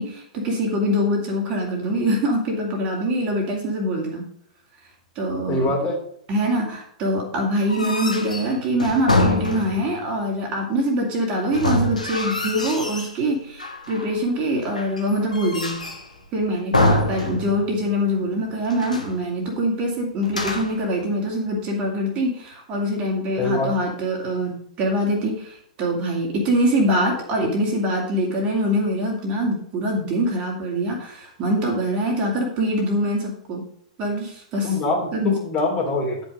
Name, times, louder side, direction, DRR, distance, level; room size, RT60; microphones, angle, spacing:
voice 1, 0.0-4.3 5.2-5.7 6.3-15.8 16.3-33.6 34.0-34.7 35.1-35.3, equal, 30° right, 0 dB, 2.5 m, -24 dB
voice 2, 5.5-6.0 23.4-23.7 34.6-36.2, left 2 dB, 30° left, -1 dB, 2.8 m, -23 dB
sound 1, 7.6-10.0 11.5-13.2 13.6-14.2 14.7-16.1 16.7-17.8 18.1-18.2 18.6-19.2 20.2-20.9, left 2 dB, 80° left, 1.7 m, -25 dB
10.0 x 5.4 x 5.1 m, 0.67 s
figure-of-eight pair, 105°, 4 cm